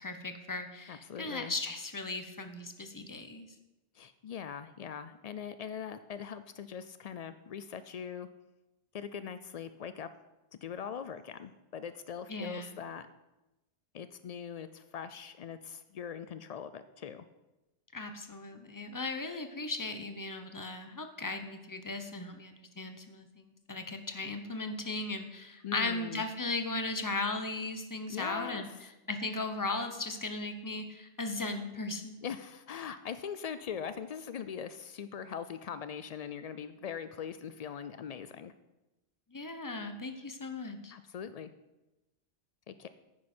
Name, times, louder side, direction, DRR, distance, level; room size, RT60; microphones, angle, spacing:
voice 1, 0.0-3.5 12.3-12.8 17.9-28.7 29.1-32.2 39.3-40.9, left 2 dB, 20° left, 7 dB, 0.7 m, -37 dB
voice 2, 0.9-1.5 3.9-8.3 8.9-10.1 10.6-13.1 13.9-17.2 25.6-26.3 28.1-28.9 32.2-38.5 40.9-41.5 42.7-42.9, left 7 dB, 90° left, 12 dB, 0.3 m, -41 dB
10.0 x 9.5 x 4.4 m, 1.0 s
omnidirectional pair, 1.2 m